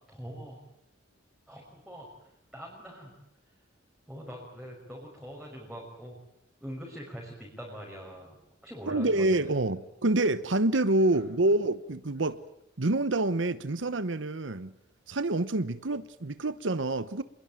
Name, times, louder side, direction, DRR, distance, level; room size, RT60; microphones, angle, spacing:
voice 1, 0.1-0.6 1.5-2.1 2.5-3.1 4.1-6.2 6.6-9.5 11.1-11.2, equal, 5° right, -3 dB, 6.1 m, -43 dB
voice 2, 8.9-12.4 12.8-14.7 15.1-17.2, right 2 dB, 70° right, 13 dB, 1.0 m, -27 dB
26.5 x 22.0 x 9.1 m, 0.77 s
head